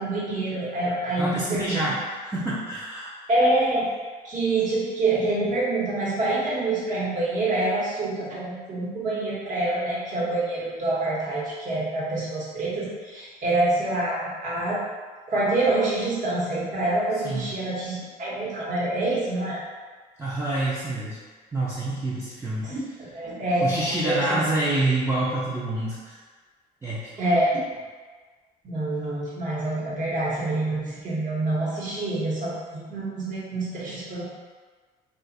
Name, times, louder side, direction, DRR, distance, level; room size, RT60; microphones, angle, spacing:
voice 1, 0.0-1.9 3.3-3.9 4.2-14.8 15.3-19.6 22.6-24.4 27.2-27.6 28.6-34.3, right 2 dB, 50° right, -7 dB, 1.2 m, -26 dB
voice 2, 1.2-3.1 17.2-17.7 20.2-21.2 21.5-22.8 23.6-26.2 26.8-27.1, right 2 dB, 15° right, -8 dB, 0.6 m, -27 dB
2.5 x 2.5 x 4.0 m, 1.5 s
cardioid pair, 110°, 17 cm